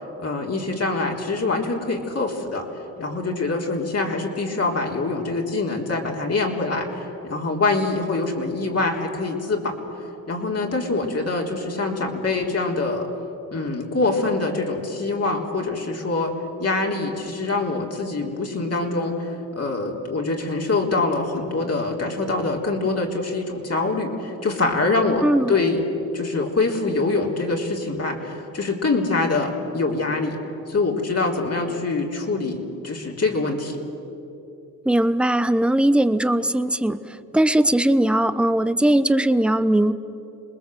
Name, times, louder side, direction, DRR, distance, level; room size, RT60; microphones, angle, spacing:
voice 1, 0.2-2.7 3.0-9.7 10.3-13.1 13.5-16.3 16.6-25.8 26.1-30.4 30.7-33.8, left 3 dB, 45° left, 0 dB, 3.8 m, -24 dB
voice 2, 25.2-25.5 34.8-39.9, right 1 dB, 5° right, 12 dB, 0.9 m, -19 dB
27.0 x 20.5 x 7.8 m, 3.0 s
cardioid pair, 70°, 35 cm